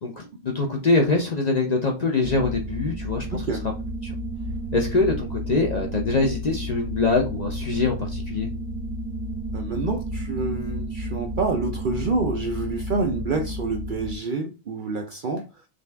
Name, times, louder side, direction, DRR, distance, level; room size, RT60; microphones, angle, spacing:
voice 1, 0.0-3.4 4.0-4.1 4.7-8.5, left 3 dB, 45° left, 0.6 m, -24 dB
sound 1, 2.2-14.2, right 1 dB, 85° right, 1.6 m, -32 dB
voice 2, 3.3-3.6 9.5-15.4, right 3 dB, 55° right, 0.6 m, -27 dB
5.1 x 2.4 x 3.3 m
omnidirectional pair, 1.3 m